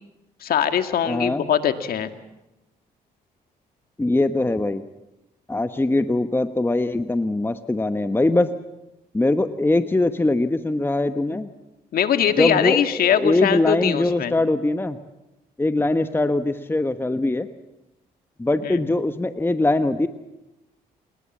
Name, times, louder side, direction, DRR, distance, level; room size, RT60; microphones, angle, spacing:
voice 1, 0.4-2.1 11.9-14.3 18.6-18.8, left 9 dB, 70° left, 8 dB, 2.0 m, -21 dB
voice 2, 1.1-1.4 4.0-4.8 5.5-8.5 9.1-11.5 12.4-15.0 15.6-17.5 18.4-20.1, left 2 dB, 15° left, 9 dB, 1.2 m, -22 dB
28.5 x 20.0 x 7.4 m, 0.96 s
cardioid pair, 75°, 16 cm